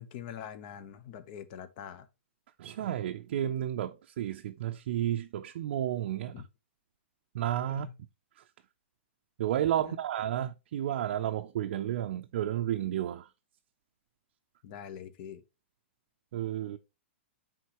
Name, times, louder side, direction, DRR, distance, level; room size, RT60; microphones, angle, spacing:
voice 1, 0.0-2.1 6.3-6.5 7.7-7.9 9.8-10.0 14.6-15.4, left 9 dB, 45° left, 0.9 m, -44 dB
voice 2, 2.6-6.4 7.3-7.9 9.4-13.3 16.3-16.8, right 11 dB, 60° right, 0.5 m, -32 dB
9.3 x 3.8 x 3.0 m
hypercardioid pair, 150°, 7 cm